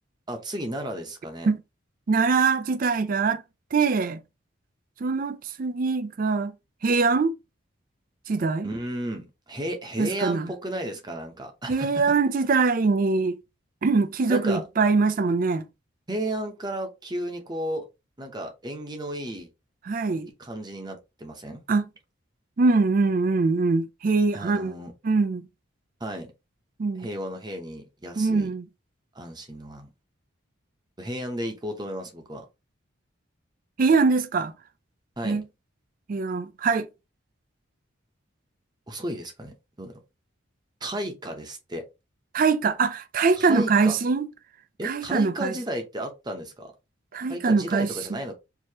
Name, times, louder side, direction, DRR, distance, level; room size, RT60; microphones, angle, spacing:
voice 1, 0.3-1.5 8.6-12.0 14.3-14.6 16.1-17.8 18.2-19.5 20.4-21.6 24.3-24.9 26.0-26.3 27.0-28.5 29.1-29.9 31.0-32.5 35.2-35.4 38.9-40.0 40.8-41.8 43.4-44.0 44.8-46.7 47.3-48.4, right 1 dB, 20° right, 0.9 m, -33 dB
voice 2, 2.1-3.4 3.7-4.2 5.0-6.5 6.8-7.3 8.3-8.7 10.0-10.5 11.7-13.4 13.8-15.6 19.8-20.3 21.7-21.9 22.6-24.7 25.0-25.5 26.8-27.1 28.2-28.6 33.8-34.5 35.2-35.4 36.1-36.9 42.3-44.3 44.8-45.5 47.1-48.2, right 4 dB, 45° right, 0.4 m, -23 dB
4.6 x 2.9 x 2.8 m
head